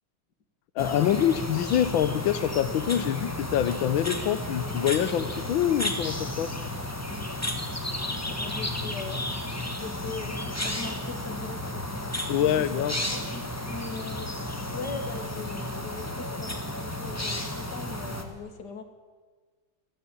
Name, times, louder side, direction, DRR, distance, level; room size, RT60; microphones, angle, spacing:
voice 1, 0.7-6.6 12.3-13.0, left 10 dB, 75° left, 13 dB, 1.6 m, -25 dB
sound 1, 0.8-18.2, left 1 dB, 10° left, 1.6 m, -33 dB
sound 2, 1.0-18.3, right 1 dB, 90° right, 7.6 m, -51 dB
voice 2, 8.0-9.3 9.6-12.1 12.4-12.7 13.1-18.8, left 5 dB, 55° left, 8 dB, 2.4 m, -40 dB
28.0 x 11.0 x 9.1 m, 1.4 s
omnidirectional pair, 2.3 m